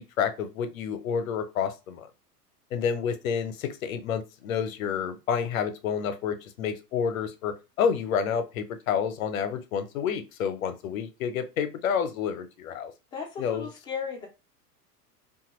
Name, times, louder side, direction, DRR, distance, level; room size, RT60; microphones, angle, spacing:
voice 1, 0.0-2.1 2.7-12.9 13.4-13.7, left 7 dB, 55° left, 9 dB, 0.6 m, -29 dB
voice 2, 13.1-14.3, left 6 dB, 10° left, 0 dB, 0.4 m, -35 dB
2.8 x 2.3 x 2.9 m, 0.28 s
figure-of-eight pair, 90°, 48 cm